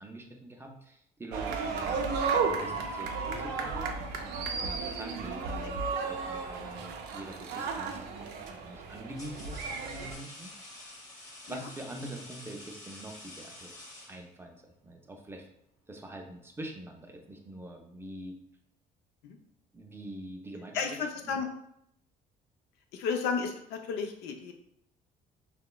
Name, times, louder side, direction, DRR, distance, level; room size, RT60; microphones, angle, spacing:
voice 1, 0.0-10.5 11.5-15.5 15.9-18.3 19.7-21.0 21.2-21.4, right 1 dB, 15° right, 2 dB, 0.4 m, -45 dB
sound 1, 1.3-10.2, right 5 dB, 80° right, 0.4 m, -34 dB
sound 2, 8.6-14.6, left 1 dB, 20° left, 0.8 m, -49 dB
voice 2, 20.7-21.5 22.9-24.5, left 5 dB, 90° left, 5 dB, 0.4 m, -33 dB
2.9 x 2.0 x 2.2 m, 0.73 s
cardioid pair, 110°, 17 cm